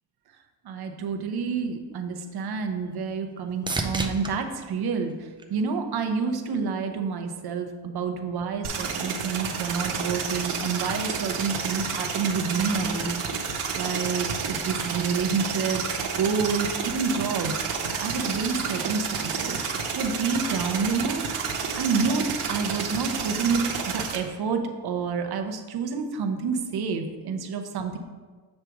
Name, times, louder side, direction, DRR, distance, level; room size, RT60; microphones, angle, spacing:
voice 1, 0.6-15.8 16.2-19.6 19.9-28.0, right 5 dB, 50° right, 5 dB, 0.9 m, -29 dB
sound 1, 1.9-6.1 6.7-7.3 15.1-15.2, right 3 dB, 10° right, 0.4 m, -36 dB
sound 2, 8.6-24.2, right 6 dB, 90° right, 1.1 m, -30 dB
7.1 x 3.3 x 5.9 m, 1.4 s
cardioid pair, 110°, 49 cm